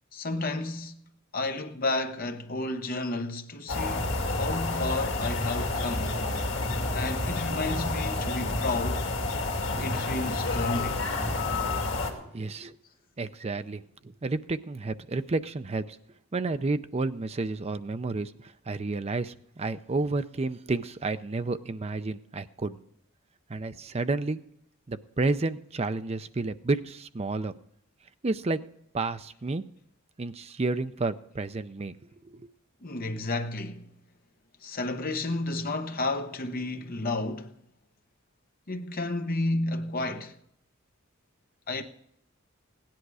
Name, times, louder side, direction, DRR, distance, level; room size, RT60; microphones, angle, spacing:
voice 1, 0.1-1.0 1.3-6.2 6.9-9.1 9.8-11.0 32.8-33.9 34.6-37.6 38.7-40.3 41.7-41.8, left 2 dB, 45° left, 1.0 m, -32 dB
sound 1, 3.7-12.1, left 2 dB, 60° left, 2.3 m, -29 dB
voice 2, 12.3-12.8 13.2-13.8 14.2-16.0 16.3-22.8 23.5-24.4 24.9-27.5 28.2-28.6 28.9-29.6 30.2-31.9 32.2-32.4, right 3 dB, 30° right, 0.5 m, -31 dB
16.0 x 10.5 x 4.8 m
head